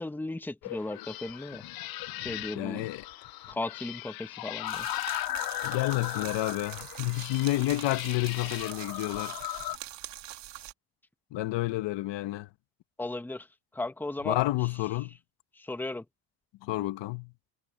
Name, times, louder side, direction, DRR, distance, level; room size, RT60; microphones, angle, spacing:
voice 1, 0.0-1.6 2.2-2.9 3.5-4.9 13.0-13.5 13.7-14.4 15.5-16.0, left 2 dB, 5° left, 1.1 m, -36 dB
sound 1, 0.6-9.8, left 16 dB, 55° left, 0.6 m, -37 dB
voice 2, 2.5-3.1 5.6-9.4 11.3-12.5 14.2-15.2 16.6-17.3, left 18 dB, 70° left, 1.3 m, -30 dB
sound 2, 4.7-10.7, right 14 dB, 70° right, 2.3 m, -44 dB
cardioid pair, 110°, 44 cm